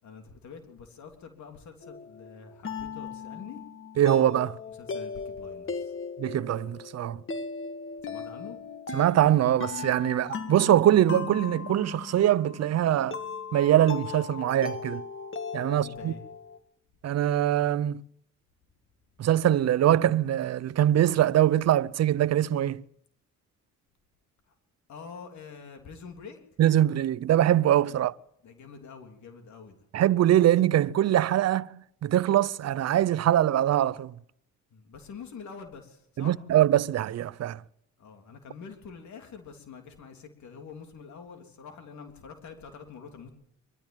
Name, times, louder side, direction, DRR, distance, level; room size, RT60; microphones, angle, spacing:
voice 1, 0.0-3.6 4.7-5.9 8.0-8.6 15.7-16.2 24.5-24.6 24.9-26.4 27.9-28.0 28.4-29.8 34.7-36.4 38.0-43.3, left 5 dB, 70° left, 3.3 m, -46 dB
sound 1, 1.8-16.6, left 5 dB, 40° left, 2.0 m, -38 dB
voice 2, 4.0-4.6 6.2-7.2 8.9-13.2 13.5-15.0 15.5-16.1 17.0-18.0 19.2-22.8 26.6-28.1 29.9-31.7 32.0-34.1 36.2-37.6, right 12 dB, 55° right, 0.7 m, -23 dB
23.0 x 13.0 x 9.1 m
cardioid pair, 90°, 30 cm